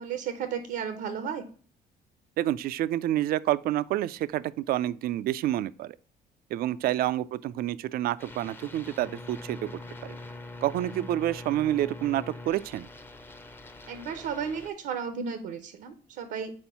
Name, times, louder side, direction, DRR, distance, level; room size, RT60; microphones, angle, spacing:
voice 1, 0.0-1.4 6.8-7.0 13.9-16.5, right 7 dB, 80° right, 0.8 m, -34 dB
voice 2, 2.4-6.0 6.5-9.7 10.0-10.2 10.6-12.9, right 13 dB, 60° right, 0.4 m, -28 dB
sound 1, 8.2-14.7, left 2 dB, 15° left, 0.6 m, -43 dB
4.4 x 4.4 x 5.5 m
cardioid pair, 110°, 17 cm